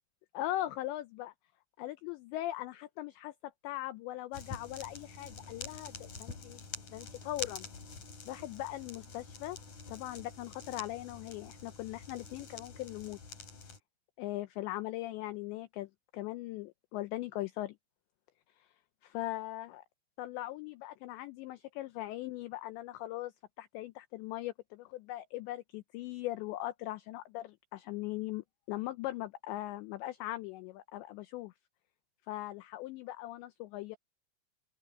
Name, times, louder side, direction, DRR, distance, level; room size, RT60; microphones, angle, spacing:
voice 1, 0.3-1.3 1.8-7.7 8.3-9.6 9.9-13.2 14.2-17.8 18.6-18.7 19.0-19.8 20.2-23.3 23.6-31.5 32.3-34.0, left 16 dB, 90° left, 2.5 m, -40 dB
sound 1, 4.3-13.8, left 5 dB, 35° left, 4.9 m, -47 dB
open air
omnidirectional pair, 6.0 m